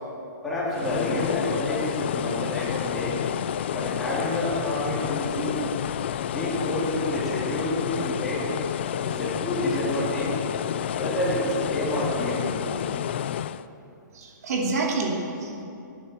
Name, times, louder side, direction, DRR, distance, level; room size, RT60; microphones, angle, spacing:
voice 1, 0.4-3.2 3.7-5.7 6.3-8.5 9.0-10.4 11.0-12.6, left 1 dB, ahead, -11 dB, 3.7 m, -29 dB
sound 1, 0.7-13.6, left 10 dB, 35° left, 0.3 m, -30 dB
voice 2, 14.2-15.6, right 3 dB, 50° right, 1 dB, 2.6 m, -28 dB
14.0 x 10.0 x 9.2 m, 2.7 s
hypercardioid pair, 170°, 11 cm